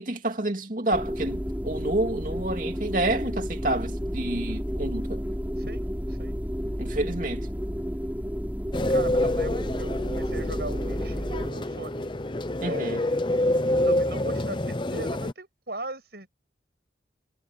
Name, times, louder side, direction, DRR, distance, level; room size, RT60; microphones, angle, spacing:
voice 1, 0.0-5.2 6.8-7.5 12.6-13.0, right 1 dB, 45° right, 2.8 m, -29 dB
sound 1, 0.9-11.5, equal, 10° right, 4.3 m, -31 dB
voice 2, 5.5-6.4 8.9-12.1 12.6-13.2 13.8-16.3, right 2 dB, 60° right, 6.4 m, -39 dB
sound 2, 8.7-15.3, left 1 dB, 25° left, 0.7 m, -27 dB
head